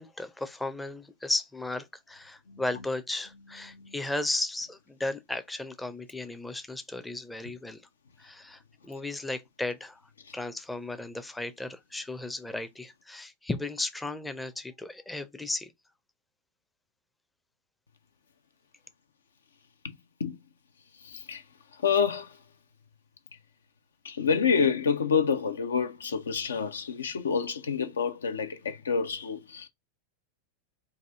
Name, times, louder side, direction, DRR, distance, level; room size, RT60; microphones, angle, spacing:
voice 1, 0.0-7.8 8.2-10.0 10.3-15.7, left 2 dB, 5° left, 0.5 m, -35 dB
voice 2, 19.8-20.4 21.0-21.4 21.8-22.3 24.0-29.7, left 6 dB, 70° left, 0.5 m, -28 dB
4.2 x 2.6 x 3.4 m
figure-of-eight pair, 90°, 0 cm